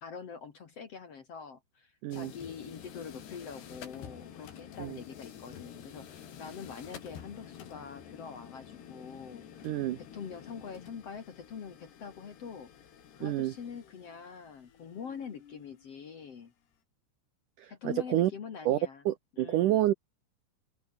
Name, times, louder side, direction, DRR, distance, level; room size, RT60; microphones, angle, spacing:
voice 1, 0.0-9.6 10.0-12.7 13.1-16.5 17.7-19.0 19.3-19.8, left 6 dB, 50° left, 2.2 m, -44 dB
sound 1, 2.1-16.4, left 9 dB, 75° left, 4.9 m, -50 dB
voice 2, 9.6-10.0 13.2-13.5 17.6-18.3 18.7-18.8 19.1-19.9, right 14 dB, 75° right, 1.9 m, -28 dB
open air
omnidirectional pair, 4.9 m